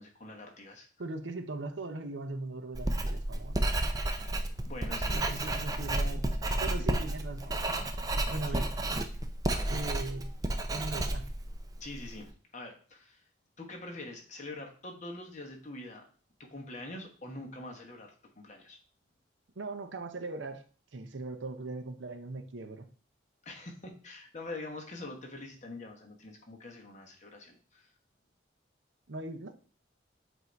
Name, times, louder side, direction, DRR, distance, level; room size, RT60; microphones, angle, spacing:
voice 1, 0.0-0.9 4.7-5.6 6.4-6.7 8.5-8.7 9.5-9.7 11.8-13.2 13.6-16.0 16.4-18.8 23.4-27.9, left 2 dB, 40° left, 1 dB, 1.2 m, -45 dB
voice 2, 1.0-3.6 5.1-6.2 6.6-7.6 8.3-8.7 9.7-10.3 10.7-11.3 19.6-20.6 20.9-22.9 29.1-29.5, right 2 dB, 90° right, 7 dB, 0.7 m, -39 dB
Writing, 2.7-12.2, right 1 dB, 20° right, 0.4 m, -32 dB
8.1 x 2.7 x 4.5 m, 0.42 s
head